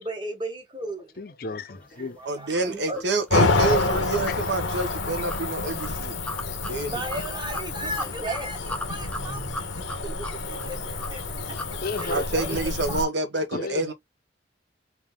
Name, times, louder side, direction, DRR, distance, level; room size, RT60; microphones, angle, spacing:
voice 1, 0.0-1.2 2.2-3.0 6.9-11.6 12.0-12.6 12.9-13.0, right 1 dB, 25° right, 1.0 m, -35 dB
voice 2, 1.2-2.4 4.2-4.4 11.8-12.4 13.5-13.9, left 3 dB, 50° left, 0.6 m, -34 dB
voice 3, 2.3-6.1 6.7-7.0 12.1-13.9, right 2 dB, 65° right, 0.9 m, -27 dB
sound 1, 2.5-12.6, left 1 dB, 5° left, 0.3 m, -39 dB
Cricket / Motor vehicle (road), 3.3-13.0, left 3 dB, 90° left, 0.9 m, -28 dB
3.6 x 2.6 x 3.6 m
head